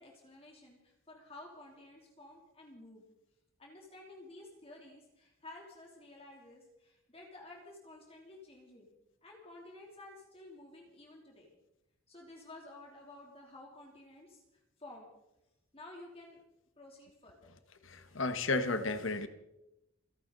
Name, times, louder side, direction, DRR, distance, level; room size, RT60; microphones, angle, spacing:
voice 1, 0.0-3.0 3.6-8.9 9.2-11.5 12.1-14.4 14.8-15.1 15.7-16.4 16.8-17.5, left 2 dB, 30° left, -1 dB, 3.3 m, -53 dB
voice 2, 17.8-19.3, left 3 dB, 65° left, 10 dB, 1.4 m, -33 dB
29.5 x 12.0 x 4.1 m, 0.88 s
head